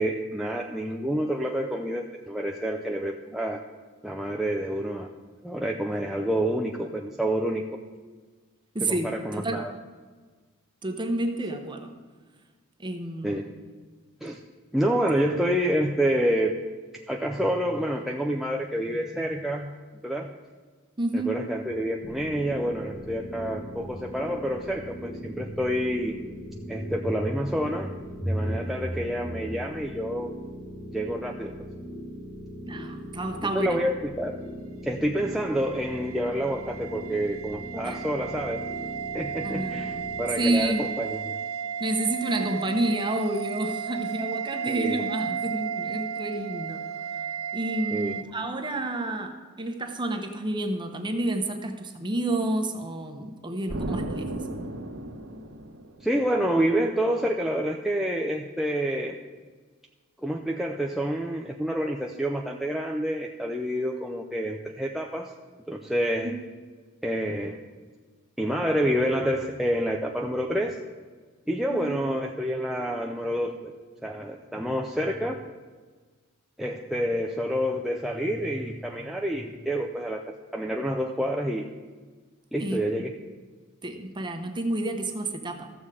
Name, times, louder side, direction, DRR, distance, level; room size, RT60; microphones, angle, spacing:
voice 1, 0.0-3.6 4.0-5.1 5.4-7.6 8.8-9.7 13.2-13.5 14.2-14.4 14.7-16.5 17.1-19.7 20.0-20.3 21.1-26.2 26.7-27.9 28.2-30.3 30.9-31.5 33.4-34.4 34.8-38.6 39.1-41.3 44.7-45.1 47.9-48.1 56.0-59.2 60.2-65.3 65.7-66.3 67.0-67.6 68.4-70.8 71.5-73.7 74.0-75.4 76.6-81.7 82.5-83.1, equal, ahead, 0 dB, 0.5 m, -28 dB
voice 2, 8.7-9.6 10.8-11.9 12.8-13.4 21.0-21.4 32.7-33.8 37.8-38.0 39.4-40.1 40.4-40.9 41.8-46.8 47.1-47.2 47.5-54.4 66.2-66.4 71.7-72.0 82.6-82.8 83.8-85.7, right 1 dB, 20° right, 5 dB, 0.9 m, -30 dB
sound 1, 22.0-40.6, equal, 30° left, 1.3 m, -40 dB
sound 2, 35.2-48.2, right 7 dB, 85° right, 0.6 m, -34 dB
Explosion, 53.7-56.4, right 1 dB, 70° right, 1.2 m, -34 dB
14.5 x 7.1 x 4.9 m, 1.4 s
head